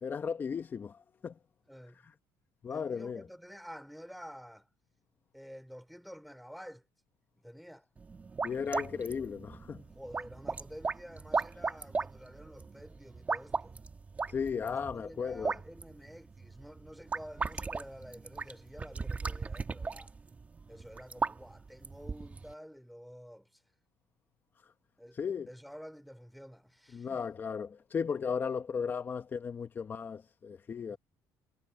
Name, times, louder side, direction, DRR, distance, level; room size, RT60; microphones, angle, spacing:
voice 1, 0.0-1.3 2.6-3.3 8.4-9.8 14.3-15.5 25.2-25.5 26.9-31.0, left 6 dB, 30° left, 1.4 m, -35 dB
voice 2, 1.7-2.1 2.7-4.7 5.3-6.8 7.4-7.9 9.9-13.8 14.6-20.1 20.7-23.6 25.0-25.2 25.5-27.3 30.9-31.0, equal, ahead, 3.2 m, -50 dB
sound 1, 8.0-22.5, right 4 dB, 20° right, 1.9 m, -38 dB
cardioid pair, 145°, 7 cm